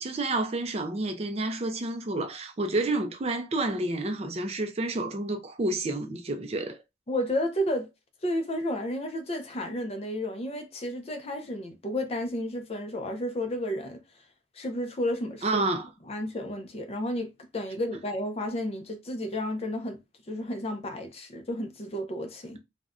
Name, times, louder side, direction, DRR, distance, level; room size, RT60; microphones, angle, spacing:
voice 1, 0.0-6.8 15.4-15.9, right 2 dB, 30° right, 0.4 m, -29 dB
voice 2, 7.1-7.9 8.2-14.0 14.5-15.6 16.1-20.0 20.3-22.6, left 1 dB, 30° left, 0.5 m, -32 dB
2.4 x 2.1 x 3.5 m
head